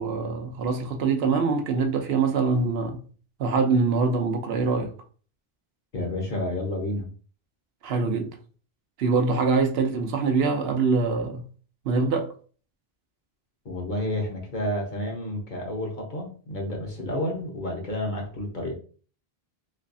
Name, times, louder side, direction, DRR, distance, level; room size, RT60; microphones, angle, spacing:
voice 1, 0.0-3.0 3.4-4.9 7.8-8.3 9.0-11.5 11.8-12.3, right 4 dB, 75° right, 0.8 m, -24 dB
voice 2, 5.9-7.1 13.6-18.7, left 1 dB, 50° left, 1.0 m, -30 dB
3.3 x 3.0 x 2.6 m
omnidirectional pair, 1.0 m